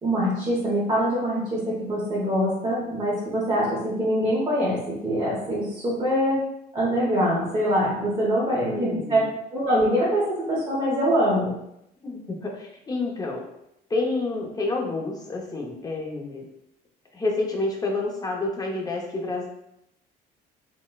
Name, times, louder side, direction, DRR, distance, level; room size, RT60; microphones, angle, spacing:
voice 1, 0.0-6.4 6.7-9.2 9.5-11.5, equal, 25° right, -8 dB, 1.0 m, -24 dB
voice 2, 8.6-9.3 12.0-13.4 13.9-16.4 17.1-19.5, left 2 dB, 20° left, 0 dB, 0.7 m, -29 dB
4.1 x 2.1 x 2.3 m, 0.82 s
cardioid pair, 110°, 17 cm